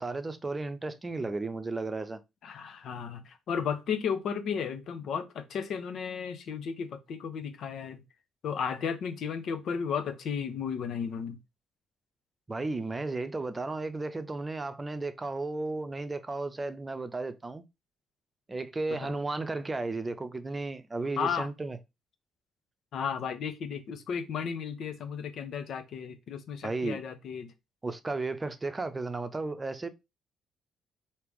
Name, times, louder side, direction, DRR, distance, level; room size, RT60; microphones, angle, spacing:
voice 1, 0.0-2.2 12.5-17.6 18.5-21.8 26.6-27.0 27.8-29.9, right 3 dB, 25° right, 0.7 m, -34 dB
voice 2, 2.4-8.0 8.4-11.4 19.0-19.1 21.2-21.5 22.9-27.5, left 7 dB, 65° left, 0.8 m, -34 dB
3.4 x 2.9 x 4.7 m
supercardioid pair, 55°, 0 cm